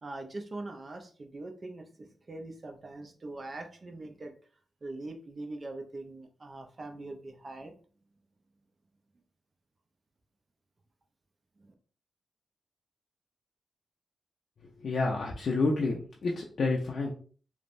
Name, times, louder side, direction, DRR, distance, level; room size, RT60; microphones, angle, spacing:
voice 1, 0.0-4.3 4.8-7.7 11.6-11.7, right 2 dB, 45° right, 5 dB, 0.6 m, -42 dB
voice 2, 14.8-17.1, left 3 dB, 65° left, -2 dB, 0.5 m, -29 dB
3.1 x 2.1 x 2.5 m, 0.41 s
cardioid pair, 55°, 0 cm